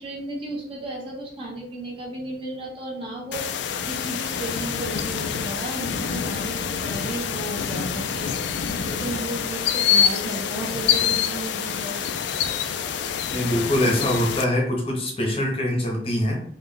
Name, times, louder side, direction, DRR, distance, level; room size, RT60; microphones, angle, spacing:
voice 1, 0.0-12.0, right 1 dB, 30° right, -3 dB, 1.0 m, -34 dB
sound 1, 3.3-14.4, left 8 dB, 80° left, 0.3 m, -26 dB
voice 2, 13.3-16.4, left 1 dB, 35° left, -1 dB, 0.8 m, -23 dB
3.8 x 2.3 x 3.2 m, 0.64 s
head